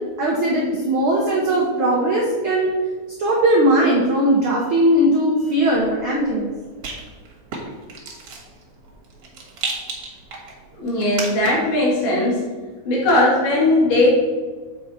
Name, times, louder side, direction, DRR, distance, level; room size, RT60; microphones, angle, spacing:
voice 1, 0.2-2.7 3.2-6.5, right 1 dB, 75° right, -3 dB, 1.2 m, -19 dB
Rattle, 5.7-11.8, right 4 dB, 55° right, 2.1 m, -35 dB
voice 2, 10.7-12.5 12.9-14.1, left 1 dB, 80° left, -6 dB, 3.8 m, -18 dB
7.2 x 5.5 x 4.2 m, 1.4 s
omnidirectional pair, 3.7 m